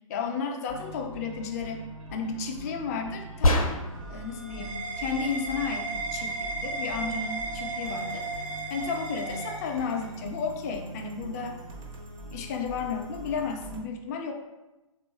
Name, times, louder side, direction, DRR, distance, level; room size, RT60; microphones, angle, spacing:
voice 1, 0.1-1.8 2.1-3.7 4.1-8.3 8.7-11.6 12.3-14.3, left 5 dB, 30° left, 4 dB, 0.3 m, -33 dB
sound 1, 0.7-13.8, right 2 dB, 65° right, 0.8 m, -43 dB
sound 2, 3.4-4.2, left 1 dB, 90° left, 0.5 m, -23 dB
sound 3, 3.8-10.2, right 3 dB, 40° right, 0.5 m, -35 dB
3.4 x 2.3 x 2.9 m, 1.1 s
hypercardioid pair, 130°, 18 cm